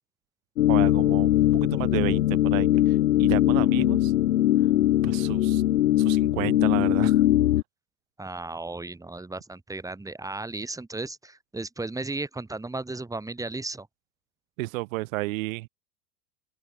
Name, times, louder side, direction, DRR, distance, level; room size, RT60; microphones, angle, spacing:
sound 1, 0.6-7.6, left 14 dB, 65° left, 2.6 m, -21 dB
voice 1, 0.7-4.1 5.0-5.6 6.0-7.3 14.6-15.7, right 22 dB, 55° right, 5.9 m, -32 dB
voice 2, 8.2-13.9, right 2 dB, 5° right, 5.9 m, -35 dB
open air
hypercardioid pair, 100°, 48 cm